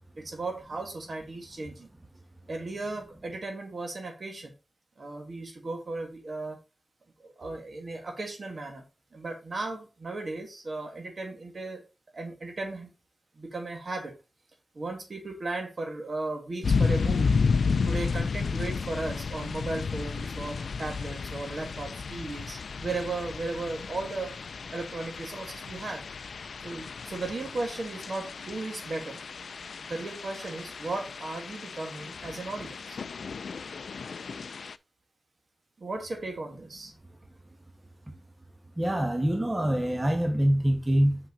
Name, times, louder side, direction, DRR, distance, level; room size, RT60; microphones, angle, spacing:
voice 1, 0.2-1.9 2.5-4.5 5.0-6.6 7.2-8.8 9.1-11.8 12.1-12.9 13.4-14.1 14.7-17.3 17.8-24.4 24.7-26.0 26.6-29.2 29.8-33.0 35.8-36.9, right 2 dB, 60° right, 2.1 m, -36 dB
sound 1, 16.6-34.8, left 5 dB, 90° left, 0.3 m, -32 dB
voice 2, 38.8-41.2, right 1 dB, 25° right, 1.5 m, -25 dB
6.0 x 5.9 x 4.0 m
wide cardioid pair, 75°, 0 cm